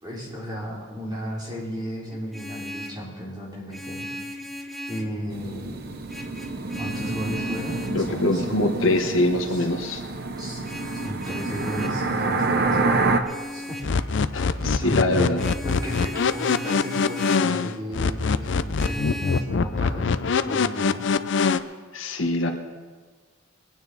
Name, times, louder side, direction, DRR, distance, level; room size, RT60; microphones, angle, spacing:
voice 1, 0.0-4.1 4.9-5.9 6.8-9.7 10.4-10.6 11.0-13.0 13.5-14.0 14.6-15.4 15.6-20.1 20.4-21.1, equal, 20° right, -5 dB, 3.5 m, -34 dB
Vehicle horn car horn honking, 2.1-3.1 3.7-5.2 6.1-8.0 10.6-12.0 13.2-14.0 15.4-17.5 18.8-19.4, left 1 dB, ahead, 0.8 m, -36 dB
sound 1, 5.3-13.2, right 3 dB, 50° right, 0.9 m, -28 dB
voice 2, 7.9-10.0 14.3-15.4 21.9-22.5, left 1 dB, 85° left, 4 dB, 1.3 m, -23 dB
sound 2, 13.8-21.6, left 5 dB, 65° left, 0.5 m, -23 dB
21.5 x 9.5 x 4.1 m, 1.5 s
head